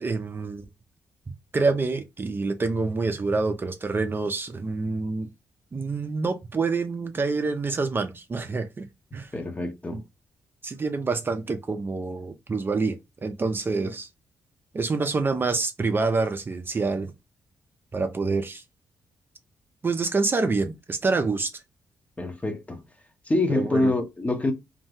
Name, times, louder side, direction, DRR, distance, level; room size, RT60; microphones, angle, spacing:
voice 1, 0.0-0.6 1.5-5.3 5.7-8.9 9.1-9.3 9.9-10.0 10.6-13.0 13.2-14.1 14.7-17.1 17.9-18.6 19.8-21.5 23.5-23.9, right 3 dB, 35° right, 0.5 m, -27 dB
voice 2, 9.3-10.0 22.2-22.8 23.3-24.5, left 2 dB, 20° left, 0.8 m, -25 dB
2.6 x 2.1 x 3.5 m
supercardioid pair, 65°, 7 cm